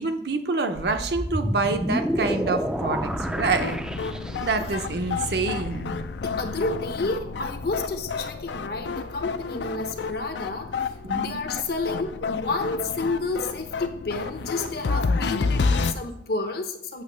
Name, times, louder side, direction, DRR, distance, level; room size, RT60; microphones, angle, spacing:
voice 1, 0.0-3.8 4.4-5.9 11.0-11.4, right 3 dB, 65° right, 6 dB, 0.7 m, -27 dB
sound 1, 0.8-4.7, equal, 5° right, 0.4 m, -29 dB
sound 2, 2.9-15.9, left 4 dB, 80° left, 0.5 m, -30 dB
voice 2, 6.2-17.0, left 3 dB, 60° left, 7 dB, 0.8 m, -30 dB
8.0 x 3.0 x 6.2 m, 0.73 s
head